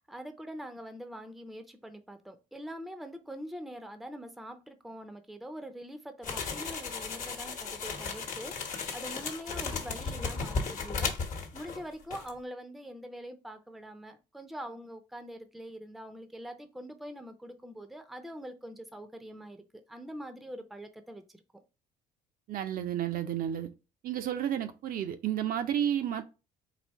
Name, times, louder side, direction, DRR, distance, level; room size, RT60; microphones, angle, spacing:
voice 1, 0.0-8.5 8.9-11.1 11.5-19.6 19.9-21.6, equal, ahead, 0.6 m, -44 dB
sound 1, 6.2-11.8 12.1-12.3, left 5 dB, 50° left, 1.0 m, -35 dB
voice 2, 22.5-23.7 24.0-26.2, right 10 dB, 55° right, 0.6 m, -31 dB
4.2 x 2.7 x 4.5 m
cardioid pair, 110°, 17 cm